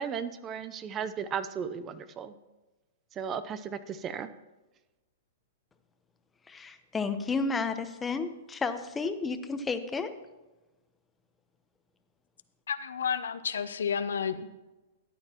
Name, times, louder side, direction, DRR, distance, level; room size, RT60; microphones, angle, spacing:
voice 1, 0.0-2.3 3.2-4.3, right 7 dB, 25° right, 13 dB, 0.5 m, -35 dB
voice 2, 6.5-10.1, left 4 dB, 15° left, 9 dB, 0.8 m, -32 dB
voice 3, 12.7-14.5, left 7 dB, 80° left, 12 dB, 0.6 m, -31 dB
13.0 x 9.7 x 2.9 m, 1.1 s
hypercardioid pair, 120°, 0 cm